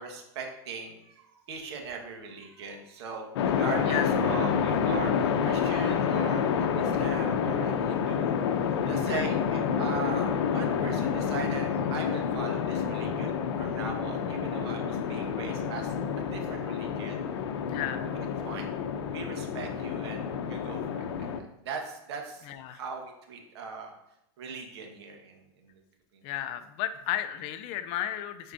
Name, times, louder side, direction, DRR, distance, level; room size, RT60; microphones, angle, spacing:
voice 1, 0.0-8.3 8.8-17.2 18.1-18.7 19.1-20.2 20.5-21.0 21.4-23.9 24.4-25.7, right 5 dB, 80° right, 2 dB, 1.5 m, -40 dB
sound 1, 3.4-21.4, left 7 dB, 80° left, 0.7 m, -28 dB
voice 2, 17.7-18.1 22.5-22.8 26.2-28.5, left 11 dB, 45° left, 11 dB, 0.6 m, -33 dB
9.7 x 4.5 x 2.7 m, 0.84 s
supercardioid pair, 145°, 14 cm